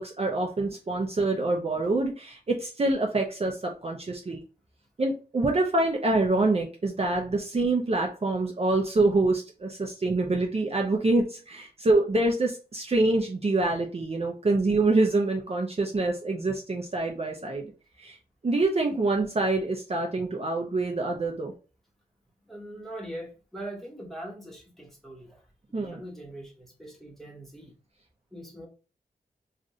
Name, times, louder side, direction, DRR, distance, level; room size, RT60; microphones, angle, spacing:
voice 1, 0.0-4.4 5.0-17.7 18.0-18.2 18.4-21.5 25.7-26.0, right 2 dB, 40° right, 1 dB, 0.6 m, -26 dB
voice 2, 22.5-27.7 28.3-28.7, right 1 dB, ahead, -2 dB, 1.2 m, -42 dB
2.5 x 2.5 x 4.2 m, 0.33 s
wide cardioid pair, 85°, 16 cm